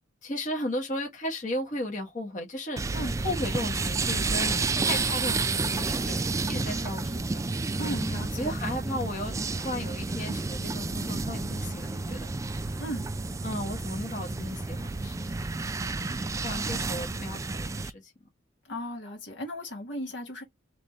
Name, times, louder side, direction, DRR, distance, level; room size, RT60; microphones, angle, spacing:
voice 1, 0.2-3.0 3.2-6.2 6.5-7.4 7.8-8.0 8.4-12.7 13.4-15.6 16.0-18.1, left 1 dB, 40° left, 1.5 m, -35 dB
sound 1, 2.8-17.9, right 3 dB, 15° right, 0.3 m, -30 dB
voice 2, 7.8-8.6 12.8-13.1 18.7-20.4, equal, 65° left, 1.7 m, -36 dB
4.0 x 3.5 x 3.2 m
head